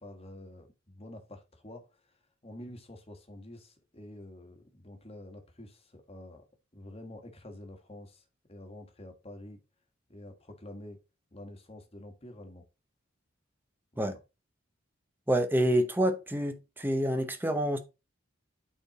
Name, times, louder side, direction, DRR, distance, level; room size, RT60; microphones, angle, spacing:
voice 1, 0.0-6.4 6.7-9.6 10.1-11.0 11.3-12.7 13.9-14.2, left 1 dB, 30° left, 1.5 m, -48 dB
voice 2, 15.3-17.8, right 1 dB, 10° right, 1.0 m, -27 dB
8.8 x 4.3 x 4.1 m
head